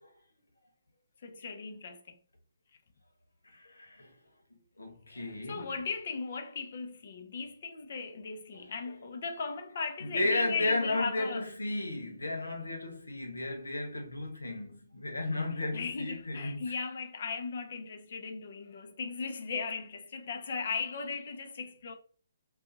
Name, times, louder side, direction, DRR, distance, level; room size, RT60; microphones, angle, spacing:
voice 1, 1.2-2.2 5.1-11.5 15.5-21.9, left 5 dB, 50° left, 0.6 m, -37 dB
voice 2, 3.4-4.2 4.5-5.7 8.5-8.7 10.0-16.8, left 2 dB, 80° left, 1.0 m, -34 dB
2.6 x 2.3 x 3.9 m
figure-of-eight pair, 135°, 0 cm